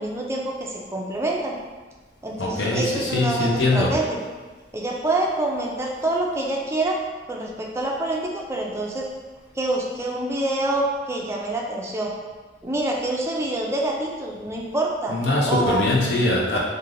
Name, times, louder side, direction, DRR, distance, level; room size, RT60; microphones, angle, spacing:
voice 1, 0.0-1.5 2.2-4.2 4.7-7.0 7.3-9.0 9.6-12.1 12.6-15.1 15.5-15.9 16.5-16.6, right 2 dB, 15° right, -1 dB, 0.4 m, -26 dB
voice 2, 2.4-3.9 15.1-16.6, left 2 dB, 70° left, -2 dB, 0.6 m, -22 dB
3.2 x 2.5 x 2.5 m, 1.3 s
head